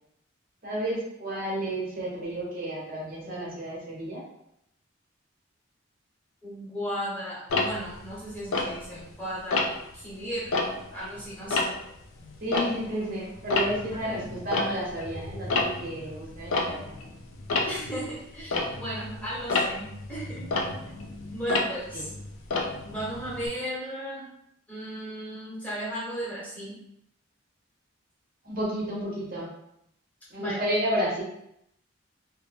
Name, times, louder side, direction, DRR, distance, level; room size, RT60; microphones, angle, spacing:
voice 1, 0.6-4.2 12.4-16.9 21.9-22.1 28.4-29.5 30.3-31.2, equal, 45° right, -4 dB, 0.9 m, -31 dB
voice 2, 6.4-10.6 10.9-11.7 14.0-14.3 17.6-20.5 21.3-22.1 22.8-24.3 24.7-26.7 30.4-30.6, equal, 10° left, -8 dB, 1.0 m, -35 dB
Tick-tock, 7.5-9.1 9.5-9.9 10.4-13.1 13.4-23.5, left 3 dB, 90° left, 0.4 m, -30 dB
2.6 x 2.1 x 3.4 m, 0.78 s
head